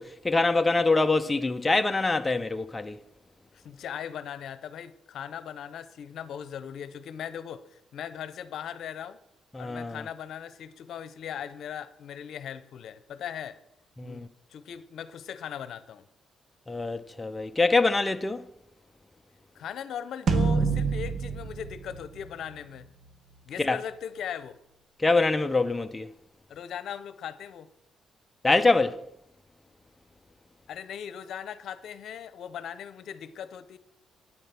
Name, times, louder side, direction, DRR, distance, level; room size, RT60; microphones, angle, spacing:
voice 1, 0.0-3.0 9.5-10.0 14.0-14.3 16.7-18.5 23.6-23.8 25.0-26.1 28.4-29.0, left 3 dB, 15° left, 0.6 m, -24 dB
voice 2, 3.5-9.2 9.6-13.6 14.0-16.1 19.5-22.9 23.5-24.6 26.5-27.7 30.7-33.8, left 9 dB, 70° left, 0.8 m, -39 dB
sound 1, 20.3-22.8, right 4 dB, 55° right, 1.0 m, -27 dB
9.4 x 9.0 x 5.9 m
cardioid pair, 90°, 0 cm